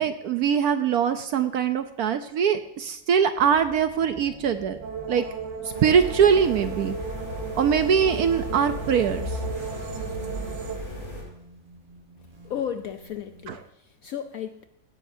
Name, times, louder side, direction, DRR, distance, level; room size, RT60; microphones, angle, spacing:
voice 1, 0.0-4.8 5.1-5.2 5.6-6.9 7.5-9.4 13.5-13.6, right 7 dB, 65° right, 9 dB, 1.0 m, -22 dB
sound 1, 3.4-13.5, right 2 dB, 30° right, 1.3 m, -48 dB
sound 2, 4.8-10.8, right 6 dB, 85° right, 1.8 m, -36 dB
sound 3, 5.7-11.2, left 1 dB, 40° left, 6.2 m, -35 dB
voice 2, 12.4-14.6, left 9 dB, 70° left, 8 dB, 0.8 m, -34 dB
16.5 x 12.5 x 2.7 m, 0.77 s
omnidirectional pair, 2.0 m